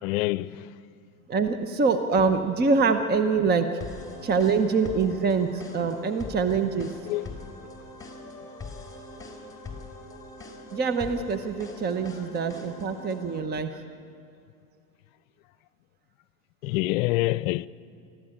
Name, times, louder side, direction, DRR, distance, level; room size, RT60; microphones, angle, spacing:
voice 1, 0.0-0.8 7.1-7.5 16.6-17.7, left 18 dB, 65° left, 0.6 m, -26 dB
voice 2, 1.3-3.7 4.2-6.9 10.7-13.8, right 4 dB, 25° right, 1.0 m, -25 dB
sound 1, 3.8-13.4, left 2 dB, 10° left, 4.0 m, -42 dB
23.5 x 15.0 x 8.8 m
hypercardioid pair, 105°, 43 cm